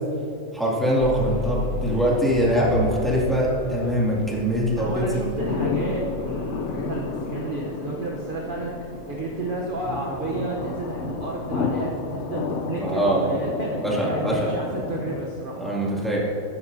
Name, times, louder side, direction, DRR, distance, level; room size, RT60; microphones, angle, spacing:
voice 1, 0.5-5.3 12.8-13.3 13.8-14.5 15.6-16.2, equal, ahead, -7 dB, 2.2 m, -23 dB
sound 1, 1.0-12.9 13.6-13.7 14.2-14.3, left 2 dB, 40° left, 1.3 m, -38 dB
voice 2, 4.8-8.7 9.1-15.6, right 2 dB, 45° right, -2 dB, 1.0 m, -31 dB
sound 2, 5.4-15.2, left 4 dB, 65° left, 0.9 m, -31 dB
13.0 x 9.9 x 2.7 m, 2.9 s
omnidirectional pair, 1.4 m